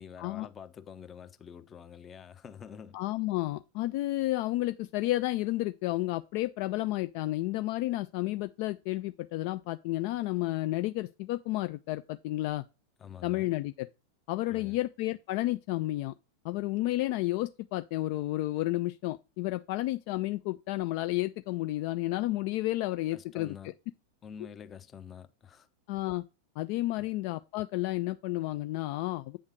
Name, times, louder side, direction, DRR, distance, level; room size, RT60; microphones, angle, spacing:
voice 1, 0.0-3.0 13.0-13.5 14.4-14.8 23.1-23.7 24.2-25.7 27.0-27.1, left 7 dB, 25° left, 0.7 m, -47 dB
voice 2, 2.9-12.6 13.2-13.9 14.3-16.1 16.4-23.6 25.9-26.3 26.6-29.4, left 17 dB, 45° left, 0.3 m, -31 dB
8.8 x 3.6 x 6.4 m
figure-of-eight pair, 90°, 0 cm